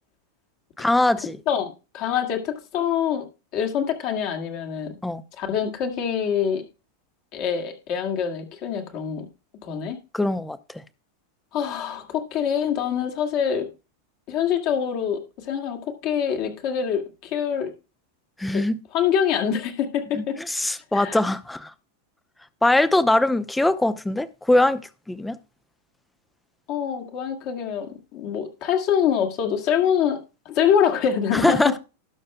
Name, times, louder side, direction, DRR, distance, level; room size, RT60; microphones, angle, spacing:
voice 1, 0.8-1.4 5.0-5.2 10.1-10.8 18.4-18.8 20.2-21.7 22.6-24.8 25.1-25.4 31.3-31.8, left 1 dB, 5° left, 0.7 m, -22 dB
voice 2, 1.5-3.3 3.5-5.0 5.4-6.6 7.3-9.3 9.6-10.0 11.5-13.7 14.3-17.7 18.5-18.6 18.9-20.4 20.9-21.2 26.7-30.2 30.5-31.8, left 8 dB, 40° left, 2.1 m, -25 dB
19.0 x 6.5 x 2.2 m
figure-of-eight pair, 90°, 0 cm